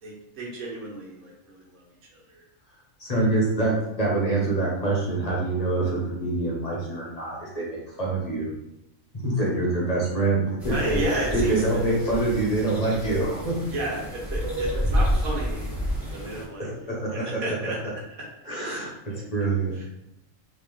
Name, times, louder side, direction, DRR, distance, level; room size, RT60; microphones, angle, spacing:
voice 1, 0.0-1.8 2.1-2.4 10.7-11.8 13.7-15.7 16.1-17.8 18.6-19.2 19.7-19.8, right 1 dB, 85° right, -3 dB, 1.4 m, -32 dB
voice 2, 3.0-8.5 9.1-10.7 11.1-13.5 16.6-17.4 18.5-18.9 19.3-19.8, right 2 dB, 35° left, -4 dB, 0.9 m, -25 dB
sound 1, 10.6-16.4, equal, ahead, 1.0 m, -29 dB
3.0 x 2.9 x 3.6 m, 0.85 s
omnidirectional pair, 1.4 m